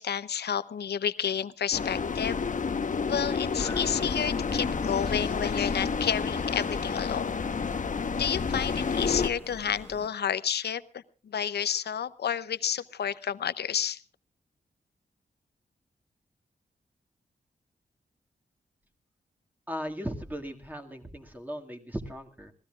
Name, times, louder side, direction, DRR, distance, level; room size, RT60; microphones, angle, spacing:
voice 1, 0.0-2.4 3.0-7.4 8.1-14.0, left 8 dB, 75° left, 14 dB, 0.8 m, -30 dB
sound 1, 1.7-9.3, left 5 dB, 50° left, 1.1 m, -30 dB
sound 2, 3.6-10.1, left 1 dB, 15° left, 1.6 m, -44 dB
voice 2, 19.7-22.5, equal, 10° right, 3 dB, 2.1 m, -37 dB
26.5 x 17.5 x 2.4 m, 0.33 s
wide cardioid pair, 110°, 17 cm